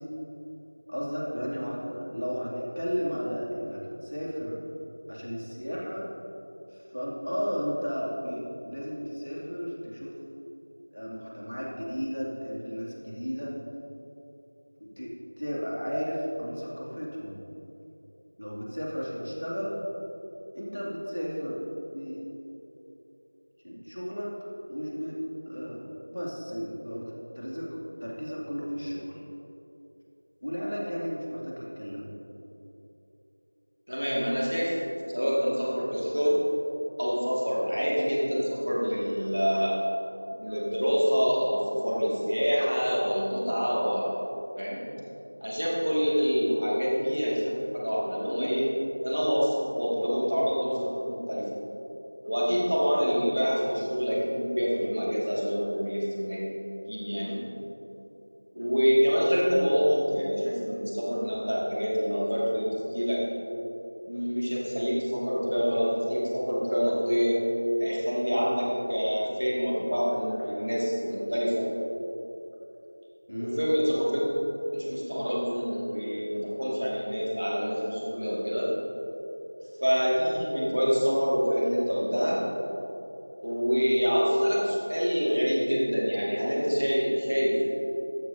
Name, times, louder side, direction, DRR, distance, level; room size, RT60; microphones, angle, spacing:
voice 1, 0.9-4.6 5.1-6.1 6.7-10.2 10.9-13.5 14.8-17.4 18.4-19.8 20.5-21.6 21.9-22.2 23.6-24.3 24.7-25.2 25.5-29.2 30.4-32.1 73.3-73.6, equal, 60° left, -4 dB, 2.6 m, -34 dB
voice 2, 33.9-34.7 35.1-36.4 37.0-39.8 40.3-44.2 44.5-44.8 45.4-48.7 49.0-51.6 52.2-56.5 56.9-57.4 58.5-63.2 64.1-67.4 67.8-71.7 73.4-74.2 74.7-78.7 79.8-82.4 83.4-87.6, equal, 40° right, -5 dB, 2.2 m, -26 dB
14.0 x 11.0 x 2.8 m, 3.0 s
figure-of-eight pair, 180°, 0 cm